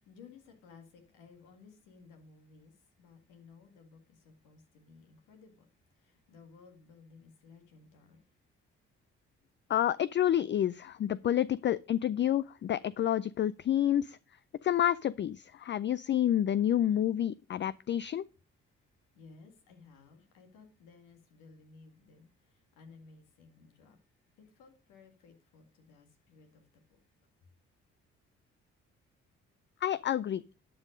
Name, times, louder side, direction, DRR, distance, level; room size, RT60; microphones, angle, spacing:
voice 1, 0.0-2.7 3.0-5.6 6.0-8.2 19.2-24.0 24.4-26.6, left 4 dB, 80° left, 2.1 m, -57 dB
voice 2, 9.7-14.2 14.6-18.3 29.8-30.4, left 11 dB, 40° left, 0.4 m, -29 dB
11.5 x 5.4 x 5.1 m
hypercardioid pair, 50°, 31 cm